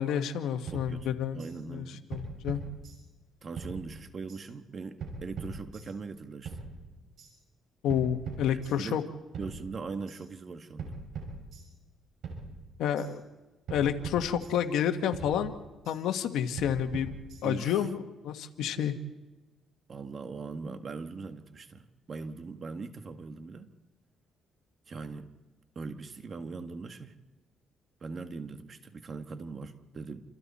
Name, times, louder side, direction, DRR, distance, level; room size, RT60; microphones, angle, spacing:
voice 1, 0.0-1.4 1.7-1.8 2.1-2.6 7.8-9.0 12.8-13.2 13.7-15.6 15.9-17.1 17.4-18.9, left 9 dB, 85° left, 7 dB, 1.4 m, -29 dB
voice 2, 0.7-2.0 3.4-6.5 8.5-9.0 9.4-11.0 17.4-17.9 19.9-23.7 24.9-25.3 25.7-27.2 28.0-30.3, right 4 dB, 45° right, 7 dB, 1.7 m, -41 dB
sound 1, 0.7-1.5 2.1-3.3 3.6-4.4 5.0-6.1 6.4-7.3 7.9-9.0 9.3-10.2 10.8-12.0 12.2-13.1 13.7-14.8 15.1-16.0 16.6-17.7, right 4 dB, 70° right, 6.2 m, -42 dB
28.5 x 27.0 x 4.3 m, 1.1 s
cardioid pair, 90°, 0 cm